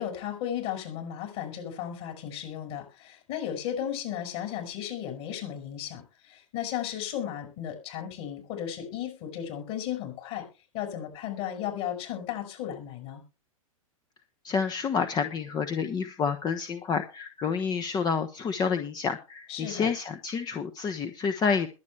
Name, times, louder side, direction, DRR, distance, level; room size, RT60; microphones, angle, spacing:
voice 1, 0.0-10.5 10.7-13.2 19.5-19.9, left 10 dB, 50° left, 4 dB, 6.3 m, -35 dB
voice 2, 14.4-21.7, left 6 dB, 20° left, 8 dB, 1.0 m, -29 dB
21.5 x 8.3 x 3.3 m, 0.32 s
figure-of-eight pair, 105°, 19 cm